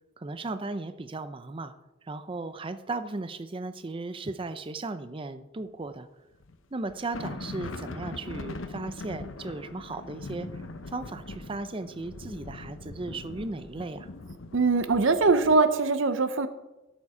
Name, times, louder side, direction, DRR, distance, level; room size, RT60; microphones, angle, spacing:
voice 1, 0.2-1.7 2.0-6.1 6.7-14.1, right 3 dB, 25° right, 11 dB, 0.5 m, -36 dB
sound 1, 5.8-6.0 6.4-6.6 6.8-15.6, left 2 dB, 75° left, 0.8 m, -41 dB
voice 2, 14.5-16.5, right 3 dB, 70° right, 11 dB, 0.7 m, -22 dB
12.5 x 7.2 x 4.9 m, 1.0 s
head